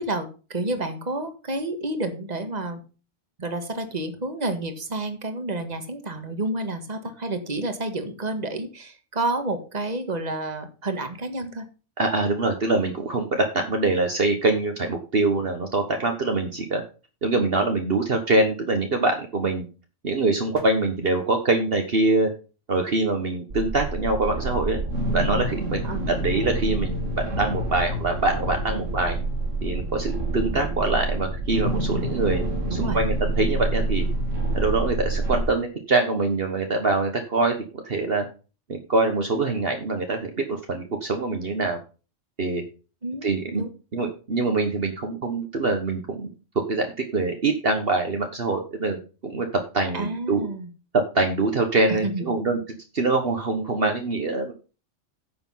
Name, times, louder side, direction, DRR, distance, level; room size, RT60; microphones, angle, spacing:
voice 1, 0.0-2.8 3.4-11.6 25.8-26.1 32.7-33.0 43.0-43.7 49.9-50.7 51.9-52.3, right 2 dB, 35° right, 7 dB, 1.7 m, -30 dB
voice 2, 12.0-16.8 17.2-19.7 20.0-22.3 22.7-24.8 25.1-29.2 29.6-32.4 32.7-34.1 34.5-38.3 38.7-41.8 42.4-42.6 43.2-43.6 43.9-46.3 46.7-50.5 50.9-54.5, right 3 dB, 50° right, 4 dB, 1.5 m, -24 dB
sound 1, 23.5-35.4, right 2 dB, 85° right, 2.2 m, -27 dB
9.8 x 7.0 x 5.6 m, 0.34 s
omnidirectional pair, 1.3 m